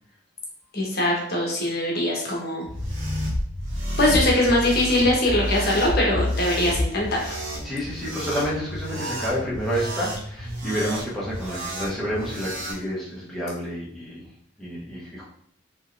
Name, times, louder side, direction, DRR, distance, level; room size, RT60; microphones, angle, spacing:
voice 1, 0.7-2.6 4.0-7.3, left 1 dB, 50° left, -2 dB, 1.1 m, -22 dB
sound 1, 2.6-12.8, equal, 60° right, 1.3 m, -30 dB
voice 2, 7.6-14.2 14.6-15.2, equal, ahead, -8 dB, 1.0 m, -29 dB
4.5 x 3.0 x 3.2 m, 0.65 s
head